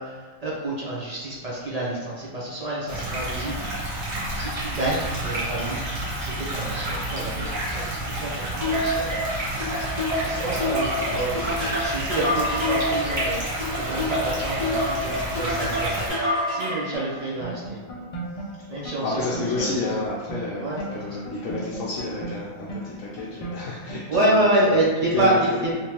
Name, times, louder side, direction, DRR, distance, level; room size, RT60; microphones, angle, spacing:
voice 1, 0.0-3.6 4.3-5.8 6.2-9.1 9.6-13.4 13.8-17.8 18.7-19.7 20.6-21.2 24.1-25.7, right 1 dB, 45° right, -6 dB, 0.5 m, -28 dB
sound 1, 2.9-16.1, right 1 dB, 90° right, 1.4 m, -30 dB
sound 2, 8.6-16.9, left 1 dB, 20° right, 1.3 m, -27 dB
sound 3, 16.9-24.6, right 2 dB, 50° left, 0.4 m, -37 dB
voice 2, 19.0-25.4, left 3 dB, 80° left, -6 dB, 1.0 m, -31 dB
3.5 x 2.9 x 2.9 m, 1.5 s
omnidirectional pair, 1.4 m